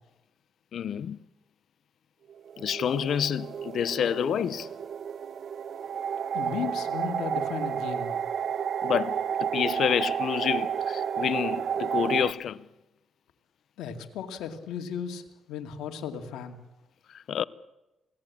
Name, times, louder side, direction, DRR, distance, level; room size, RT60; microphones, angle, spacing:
voice 1, 0.7-1.2 2.6-4.7 8.8-12.6 17.1-17.4, left 9 dB, 65° left, 0.8 m, -28 dB
sound 1, 2.3-12.3, right 8 dB, 55° right, 1.0 m, -31 dB
voice 2, 6.3-8.2 13.8-16.6, left 7 dB, 85° left, 2.3 m, -35 dB
27.0 x 17.5 x 8.6 m
cardioid pair, 90°, 0 cm